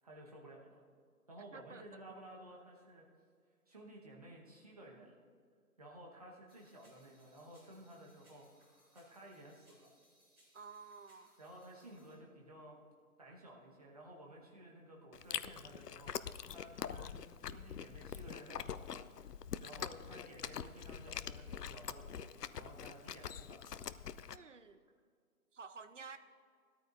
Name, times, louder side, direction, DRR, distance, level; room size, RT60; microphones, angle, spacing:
voice 1, 0.0-0.8 1.3-3.0 3.7-5.2 5.8-8.5 8.9-10.0 11.4-12.8 13.2-17.1 17.4-19.0 19.6-23.8, right 1 dB, 25° right, -3 dB, 1.3 m, -54 dB
voice 2, 1.5-1.9 10.5-11.3 24.3-24.8 25.5-26.2, right 5 dB, 50° right, 10 dB, 0.8 m, -51 dB
sound 1, 6.5-12.1, equal, 10° right, 3.7 m, -70 dB
Chewing mastication, 15.1-24.4, left 8 dB, 85° left, 0.7 m, -44 dB
20.0 x 13.5 x 2.6 m, 2.1 s
hypercardioid pair, 180°, 46 cm